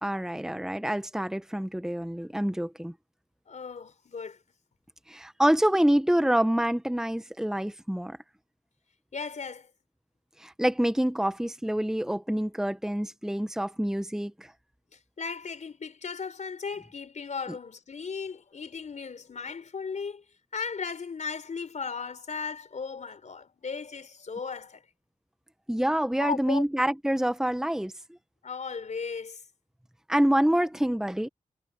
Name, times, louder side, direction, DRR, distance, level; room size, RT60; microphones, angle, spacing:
voice 1, 0.0-2.9 5.1-8.2 10.4-14.5 25.7-27.9 30.1-31.3, equal, 5° right, 1.4 m, -26 dB
voice 2, 3.5-4.4 9.1-9.7 15.2-20.2 20.5-24.8 26.2-26.6 28.4-29.4, left 5 dB, 70° left, 4.2 m, -36 dB
cardioid pair, 50°, 13 cm